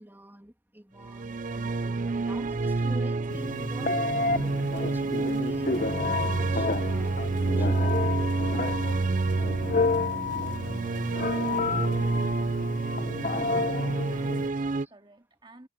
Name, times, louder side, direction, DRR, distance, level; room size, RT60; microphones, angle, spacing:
voice 1, 0.0-5.8 6.0-8.0 12.8-12.9 14.8-14.9, equal, 10° right, 2.7 m, -47 dB
sound 1, 1.0-14.9, right 3 dB, 45° right, 0.5 m, -28 dB
Telephone, 3.3-14.5, left 4 dB, 45° left, 0.8 m, -31 dB
sound 2, 4.4-12.3, right 2 dB, 75° right, 3.7 m, -51 dB
voice 2, 13.6-15.7, right 2 dB, 25° right, 2.5 m, -52 dB
head